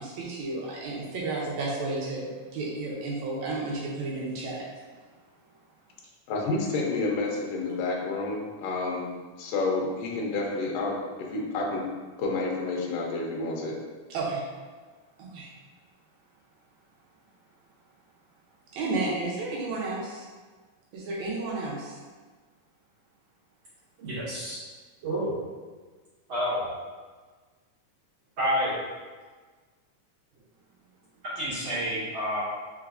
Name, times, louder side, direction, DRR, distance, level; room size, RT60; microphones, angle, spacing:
voice 1, 0.0-4.6 14.1-14.4 15.2-15.5 18.7-20.3 20.9-22.0, right 3 dB, 75° right, -5 dB, 1.9 m, -32 dB
voice 2, 6.3-9.1 9.4-11.9 12.2-13.7, left 3 dB, 75° left, -1 dB, 1.5 m, -29 dB
voice 3, 24.0-24.6 25.0-25.3 26.3-26.7 28.4-28.7 31.4-32.4, equal, 45° right, -12 dB, 2.0 m, -29 dB
4.5 x 3.9 x 2.5 m, 1.4 s
omnidirectional pair, 3.7 m